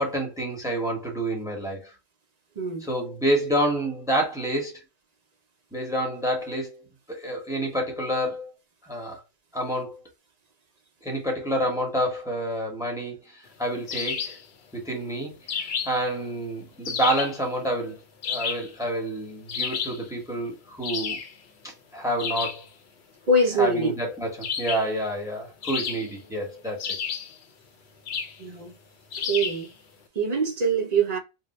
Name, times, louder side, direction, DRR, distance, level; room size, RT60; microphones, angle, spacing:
voice 1, 0.0-1.9 2.8-4.8 5.7-8.5 8.9-9.2 9.5-10.0 11.0-14.4 14.7-18.0 18.3-21.2 21.6-22.6 23.6-27.0, right 1 dB, 5° right, 0.9 m, -28 dB
voice 2, 2.6-2.9 23.3-24.0 28.4-28.7 29.2-29.7 30.2-31.2, right 2 dB, 50° right, 0.5 m, -24 dB
sound 1, 13.9-14.5 15.5-16.1 16.9-17.4 18.2-18.8 19.5-20.0 20.8-21.3 22.2-22.6 24.4-24.9 25.6-26.3 26.8-27.4 28.1-28.4 29.1-29.7, left 6 dB, 75° left, 0.9 m, -31 dB
2.7 x 2.0 x 3.9 m
omnidirectional pair, 1.1 m